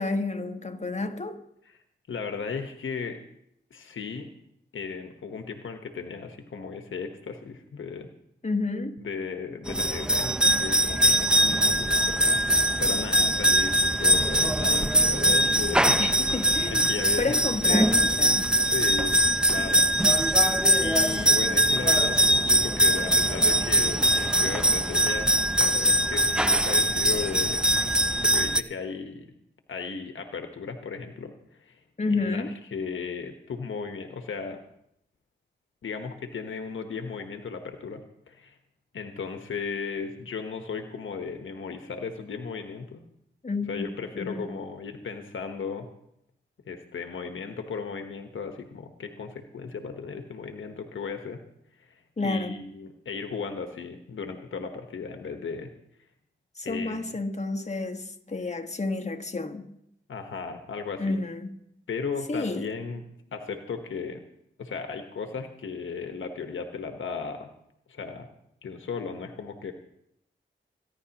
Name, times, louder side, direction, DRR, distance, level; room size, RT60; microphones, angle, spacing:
voice 1, 0.0-1.4 8.4-9.0 16.0-16.8 17.2-18.5 32.0-32.5 43.4-43.9 44.1-44.5 52.2-52.6 56.5-59.6 61.0-61.5 62.3-62.7, left 3 dB, 35° left, 1.5 m, -30 dB
voice 2, 2.1-3.2 3.7-4.3 4.7-8.1 9.0-16.0 16.8-18.1 18.7-19.2 19.5-20.2 20.8-27.6 28.2-29.3 29.7-31.8 32.1-32.4 32.7-34.6 35.8-38.0 38.3-38.6 38.9-43.0 43.7-45.9 46.7-51.4 51.8-55.7 56.6-57.2 60.1-61.2 61.9-63.0 63.3-64.2 64.6-67.5 67.9-68.3 68.6-69.7, left 5 dB, 90° left, 1.2 m, -36 dB
sound 1, 9.7-28.6, right 1 dB, 5° right, 0.6 m, -22 dB
26.5 x 10.5 x 3.0 m
cardioid pair, 55°, 20 cm